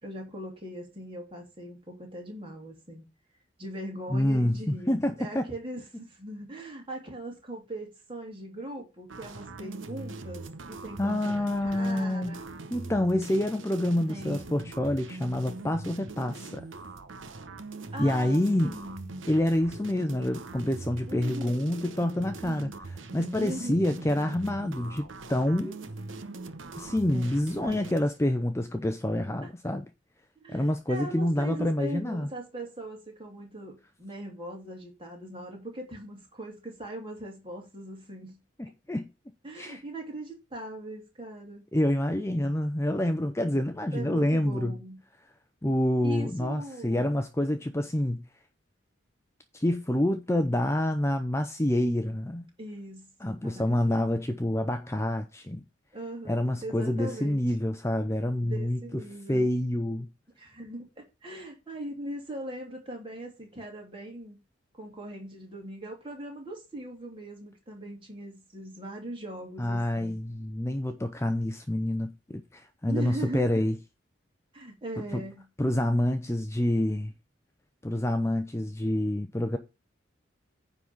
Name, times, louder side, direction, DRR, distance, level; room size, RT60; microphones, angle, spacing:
voice 1, 0.0-3.0 3.6-4.9 5.2-12.4 14.1-14.6 17.9-19.2 21.1-21.8 22.4-22.9 23.4-24.0 27.1-27.3 27.6-28.0 30.4-38.4 39.4-41.6 43.9-45.0 46.0-47.1 47.5-47.6 52.6-53.8 55.9-57.4 58.4-59.5 60.4-64.4 64.7-70.1 72.9-73.7 74.5-75.5, right 1 dB, 25° right, 3.3 m, -40 dB
voice 2, 4.1-5.5 11.0-12.4 12.7-16.7 18.0-18.7 19.3-22.7 23.1-25.8 26.8-29.9 30.5-32.3 38.6-39.1 39.6-39.8 41.7-44.7 45.6-48.2 49.5-52.4 53.2-55.6 56.3-59.0 59.3-60.1 69.6-73.8 75.1-75.2 75.6-77.1 77.8-79.6, left 1 dB, 15° left, 0.6 m, -27 dB
sound 1, 9.1-28.0, right 3 dB, 80° right, 0.9 m, -42 dB
9.8 x 4.0 x 7.1 m
head